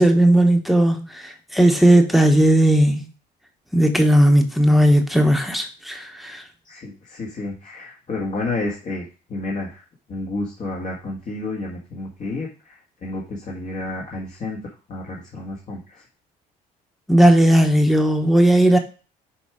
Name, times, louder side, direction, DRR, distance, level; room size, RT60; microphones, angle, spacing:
voice 1, 0.0-3.0 3.7-6.4 17.1-18.8, right 1 dB, ahead, 1.2 m, -16 dB
voice 2, 6.6-9.8 10.1-14.6 14.9-16.0, left 2 dB, 45° left, 1.9 m, -30 dB
6.8 x 4.7 x 5.0 m
cardioid pair, 110°, 17 cm